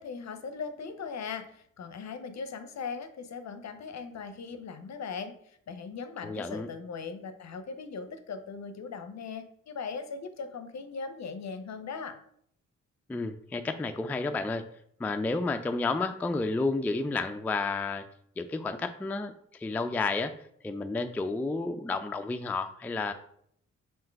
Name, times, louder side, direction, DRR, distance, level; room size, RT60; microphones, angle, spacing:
voice 1, 0.0-12.2, left 5 dB, 55° left, 9 dB, 0.6 m, -39 dB
voice 2, 6.2-6.7 13.1-14.6 15.0-18.1 18.4-20.4 20.6-23.1, left 3 dB, 5° left, 8 dB, 0.3 m, -31 dB
3.7 x 2.6 x 4.5 m, 0.67 s
supercardioid pair, 40°, 33 cm